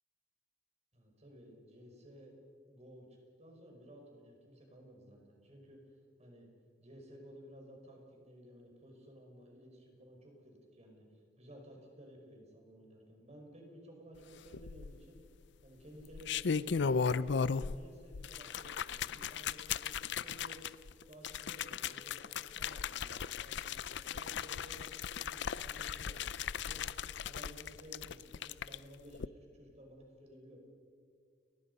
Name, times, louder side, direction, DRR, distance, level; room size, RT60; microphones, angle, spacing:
voice 1, 0.9-2.4 2.7-3.1 3.4-5.8 6.2-6.5 6.8-11.1 11.4-15.2 15.6-20.7 21.1-26.8 27.3-30.7, equal, 35° right, 1 dB, 5.4 m, -55 dB
sound 1, 14.5-15.2 16.0-17.8 18.1-28.8 29.1-29.3, left 6 dB, 70° left, 0.5 m, -37 dB
29.5 x 20.5 x 5.5 m, 2.1 s
head